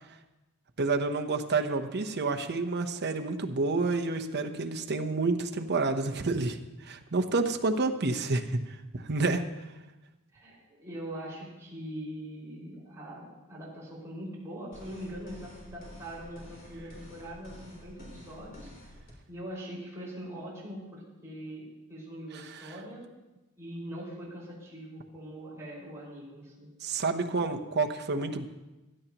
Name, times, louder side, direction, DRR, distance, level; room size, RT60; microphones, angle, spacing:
voice 1, 0.8-6.6 6.8-8.6 8.9-9.4 26.8-28.5, right 3 dB, 50° right, 6 dB, 0.9 m, -29 dB
voice 2, 10.3-18.7 19.3-23.0 23.6-26.7, equal, 15° right, -7 dB, 5.2 m, -42 dB
sound 1, 14.7-19.1, equal, 40° left, 3.4 m, -49 dB
16.5 x 12.0 x 3.0 m, 1.1 s
head